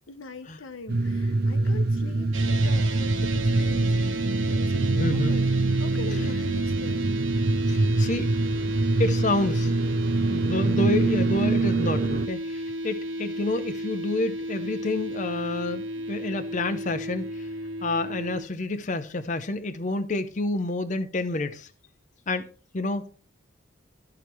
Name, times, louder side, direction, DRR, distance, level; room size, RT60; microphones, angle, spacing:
voice 1, 0.1-5.5 5.7-7.1, left 3 dB, 85° left, 1.0 m, -42 dB
sound 1, 0.9-12.3, right 3 dB, 50° right, 0.5 m, -24 dB
sound 2, 2.3-18.4, equal, 80° right, 1.6 m, -33 dB
voice 2, 5.0-5.4 7.7-8.3 9.0-9.7 10.3-17.5 17.8-21.7 22.3-23.1, left 2 dB, 40° left, 0.6 m, -29 dB
13.0 x 4.9 x 4.4 m
head